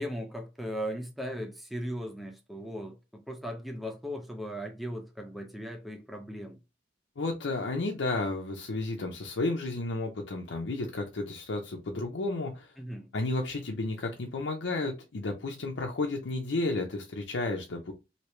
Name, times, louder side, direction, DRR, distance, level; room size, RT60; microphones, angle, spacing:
voice 1, 0.0-6.6 12.8-13.1, equal, ahead, 0.5 m, -37 dB
voice 2, 7.2-12.7 13.1-17.9, left 2 dB, 80° left, 0.6 m, -32 dB
3.0 x 2.8 x 3.1 m
head